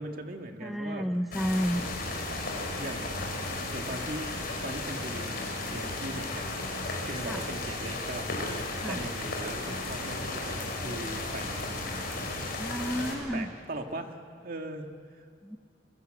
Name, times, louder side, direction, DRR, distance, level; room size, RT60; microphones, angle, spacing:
voice 1, 0.0-1.1 2.8-3.3 3.7-4.3 4.6-6.7 7.0-8.3 8.9-11.8 13.3-15.3, right 1 dB, 50° right, 4 dB, 2.0 m, -39 dB
voice 2, 0.6-1.9 7.3-7.4 8.8-9.0 12.6-13.5 15.4-15.6, equal, ahead, 6 dB, 0.7 m, -31 dB
sound 1, 1.3-13.1, left 2 dB, 55° left, 5.5 m, -34 dB
27.0 x 24.0 x 7.9 m, 2.1 s
head